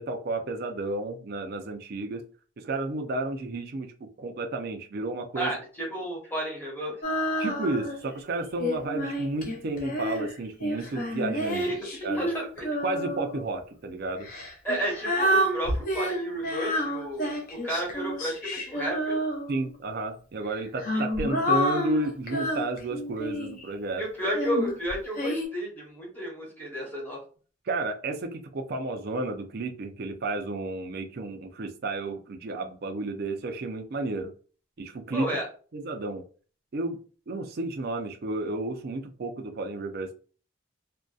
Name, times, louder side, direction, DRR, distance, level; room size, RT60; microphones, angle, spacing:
voice 1, 0.0-2.2 2.6-3.9 4.2-5.5 7.4-11.7 12.0-12.2 12.8-14.3 19.5-24.0 27.7-34.3 34.8-35.3 35.7-36.2 36.7-37.0 37.3-40.1, right 2 dB, 50° right, 5 dB, 0.4 m, -32 dB
voice 2, 5.3-7.0 11.5-11.8 12.1-12.7 14.6-19.2 20.9-21.0 24.0-27.2 35.1-35.5, equal, 10° left, -4 dB, 0.8 m, -32 dB
Female singing, 7.0-8.1 8.6-13.4 14.2-19.7 20.5-23.7 24.3-25.5, equal, 45° left, 0.6 m, -29 dB
2.6 x 2.1 x 2.3 m, 0.39 s
head